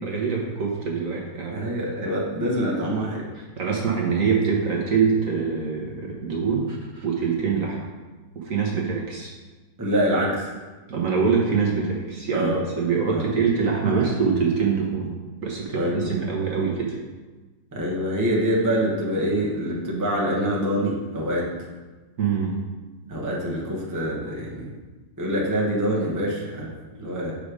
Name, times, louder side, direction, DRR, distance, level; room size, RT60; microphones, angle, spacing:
voice 1, 0.0-1.6 3.3-7.8 8.3-9.3 10.9-15.1 15.4-17.0 22.2-22.6, right 5 dB, 55° right, -2 dB, 1.3 m, -24 dB
voice 2, 1.5-3.2 9.8-10.5 12.3-12.6 13.1-13.3 15.7-16.1 17.7-21.5 23.1-24.7 25.2-26.7 27.0-27.3, equal, 15° right, -4 dB, 1.0 m, -25 dB
6.5 x 5.3 x 5.0 m, 1.3 s
omnidirectional pair, 1.9 m